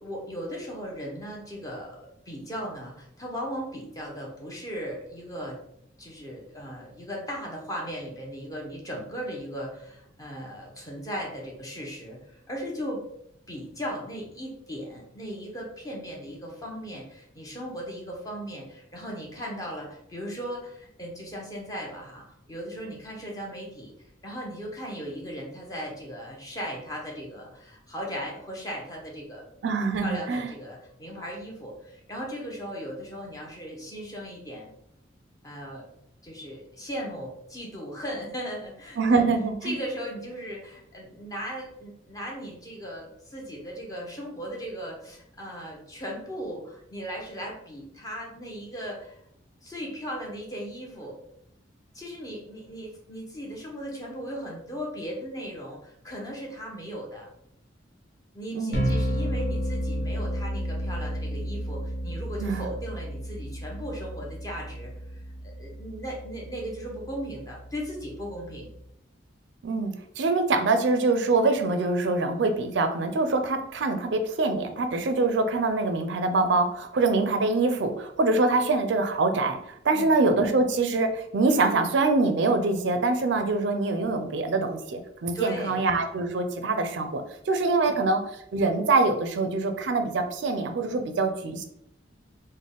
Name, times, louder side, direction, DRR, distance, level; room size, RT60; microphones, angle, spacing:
voice 1, 0.0-2.0 2.3-5.6 6.0-13.0 13.5-23.9 24.2-34.7 35.4-35.9 36.2-39.3 39.6-49.2 49.6-51.2 51.9-57.3 58.3-64.9 65.6-68.7 79.9-80.1 85.3-85.8 87.8-88.0, equal, 20° left, -2 dB, 0.7 m, -37 dB
voice 2, 29.6-30.5 39.0-39.8 58.5-58.8 62.4-62.6 69.6-91.6, right 3 dB, 65° right, 7 dB, 0.4 m, -24 dB
sound 1, 58.7-68.8, equal, 55° left, 1.0 m, -32 dB
3.4 x 2.1 x 3.7 m, 0.74 s
head